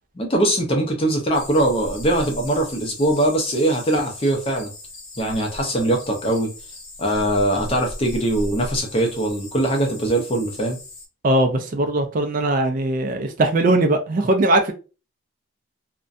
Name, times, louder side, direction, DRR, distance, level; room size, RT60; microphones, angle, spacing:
voice 1, 0.2-4.7 5.2-6.5 7.0-10.8, right 1 dB, 25° left, 0.5 m, -21 dB
sound 1, 1.3-11.1, left 1 dB, 65° left, 0.8 m, -38 dB
voice 2, 11.2-14.7, right 2 dB, 40° right, 0.3 m, -20 dB
2.5 x 2.1 x 2.5 m
head